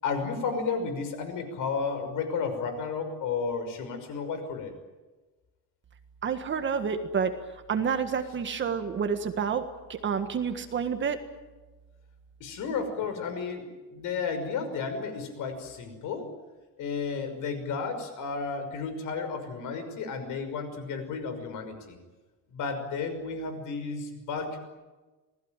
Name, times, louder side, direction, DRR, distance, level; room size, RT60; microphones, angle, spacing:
voice 1, 0.0-4.7 12.4-16.3 16.8-22.0 22.5-24.6, left 5 dB, 55° left, 8 dB, 5.9 m, -32 dB
voice 2, 6.2-7.4 7.7-11.2, right 6 dB, 30° right, 7 dB, 1.6 m, -29 dB
27.5 x 19.5 x 9.1 m, 1.2 s
cardioid pair, 175°, 37 cm